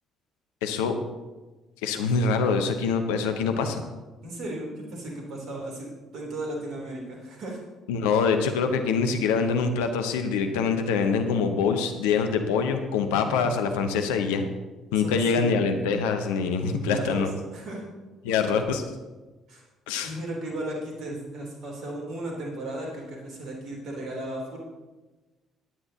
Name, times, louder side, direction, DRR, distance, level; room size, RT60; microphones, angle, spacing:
voice 1, 0.6-0.9 1.8-3.8 7.9-14.4 14.9-17.3 18.2-18.8 19.9-20.1, left 5 dB, 70° left, 7 dB, 0.9 m, -24 dB
voice 2, 4.2-5.9 6.1-7.6 8.1-8.2 13.1-13.3 14.9-15.5 16.7-17.8 18.3-18.4 19.5-19.6 20.0-24.6, right 1 dB, 55° right, -1 dB, 3.4 m, -35 dB
17.5 x 10.0 x 2.8 m, 1.2 s
figure-of-eight pair, 50°, 0 cm